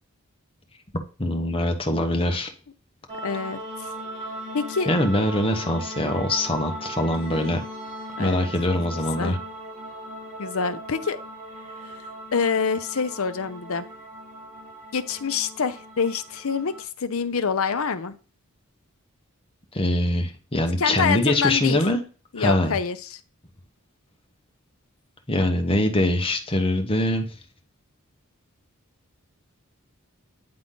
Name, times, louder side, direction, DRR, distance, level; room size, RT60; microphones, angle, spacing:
voice 1, 1.2-2.5 4.9-7.6 8.2-9.4 19.7-22.0 22.4-22.7 25.3-27.3, left 1 dB, 25° left, 5 dB, 1.2 m, -23 dB
sound 1, 3.1-16.8, equal, 30° right, 2.0 m, -38 dB
voice 2, 3.2-3.6 4.5-4.9 8.2-8.5 9.2-9.4 10.4-11.2 11.8-12.0 12.3-13.9 14.9-18.1 20.8-21.8 22.3-23.2, left 5 dB, 75° left, 12 dB, 0.7 m, -26 dB
9.7 x 3.8 x 3.8 m, 0.36 s
head